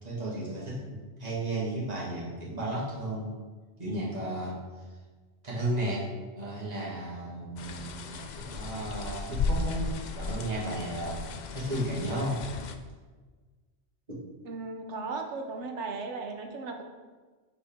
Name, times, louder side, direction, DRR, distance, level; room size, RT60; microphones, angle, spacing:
voice 1, 0.0-3.3 3.8-4.8 5.4-6.1 6.3-11.2 11.5-12.4 14.1-14.2, right 1 dB, 35° right, -7 dB, 1.9 m, -34 dB
sound 1, 7.6-12.7, left 4 dB, 60° left, 0.5 m, -35 dB
voice 2, 14.4-16.8, right 3 dB, 85° right, 4 dB, 1.1 m, -36 dB
7.0 x 4.9 x 3.6 m, 1.4 s
omnidirectional pair, 1.1 m